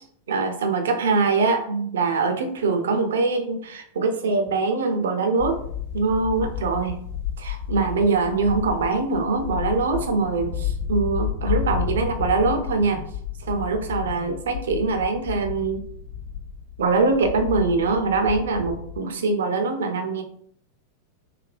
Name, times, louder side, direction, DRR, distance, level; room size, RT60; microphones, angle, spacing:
voice 1, 0.3-5.6 5.9-7.0 7.4-13.1 13.4-15.8 16.8-20.2, right 4 dB, 65° right, 6 dB, 0.5 m, -23 dB
sound 1, 5.4-19.1, left 9 dB, 75° left, 1.2 m, -32 dB
3.3 x 2.2 x 2.5 m, 0.65 s
figure-of-eight pair, 90°, 0 cm